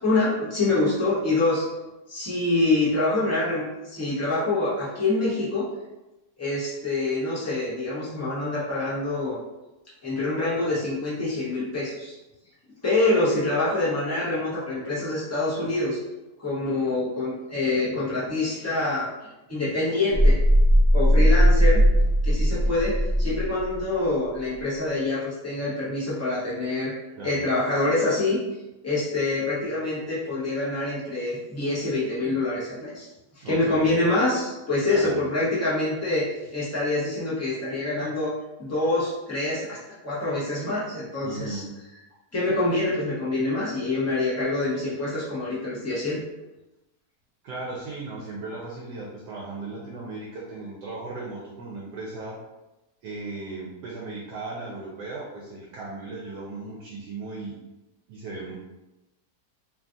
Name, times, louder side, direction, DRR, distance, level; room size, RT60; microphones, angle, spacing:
voice 1, 0.0-1.6 2.1-5.7 6.4-9.4 10.0-12.2 12.8-16.0 16.4-19.1 19.5-20.4 20.9-21.8 22.2-22.9 23.2-26.9 27.2-28.4 28.8-33.1 33.4-38.3 38.6-39.8 40.0-41.6 42.3-46.2, left 2 dB, 15° left, -9 dB, 0.5 m, -25 dB
sound 1, 20.1-23.8, equal, 50° right, 1.4 m, -18 dB
voice 2, 20.9-21.3 27.2-27.4 33.4-34.0 34.9-35.3 41.2-41.7 47.4-52.4 53.0-57.6 58.1-58.6, right 3 dB, 75° right, -4 dB, 1.1 m, -36 dB
3.2 x 2.3 x 2.5 m, 1.0 s
omnidirectional pair, 1.8 m